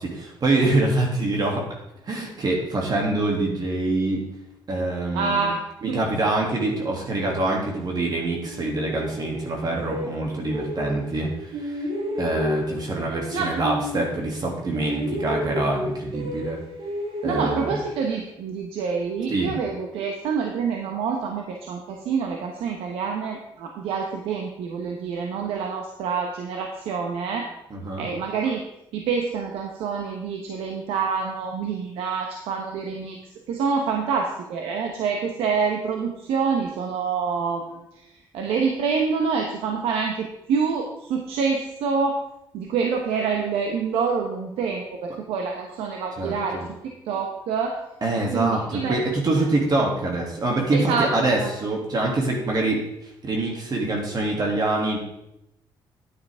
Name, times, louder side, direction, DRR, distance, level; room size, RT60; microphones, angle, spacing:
voice 1, 0.0-1.6 2.1-4.2 4.7-5.5 5.8-11.9 12.2-16.6 17.2-17.7 19.3-19.5 27.7-28.1 46.2-46.7 48.0-52.8 53.2-55.0, right 2 dB, 45° right, -1 dB, 2.6 m, -25 dB
voice 2, 5.1-5.6 5.9-6.0 13.3-13.6 17.2-27.5 28.0-28.6 28.9-33.2 33.5-38.0 38.3-42.2 42.5-47.8 48.3-49.1 50.7-51.1 51.4-51.5, right 5 dB, 85° right, 2 dB, 1.0 m, -27 dB
sound 1, 8.5-11.2 11.5-14.5 14.7-18.3, equal, 70° right, 2.9 m, -32 dB
9.5 x 9.4 x 3.6 m, 0.85 s
cardioid pair, 85°, 10 cm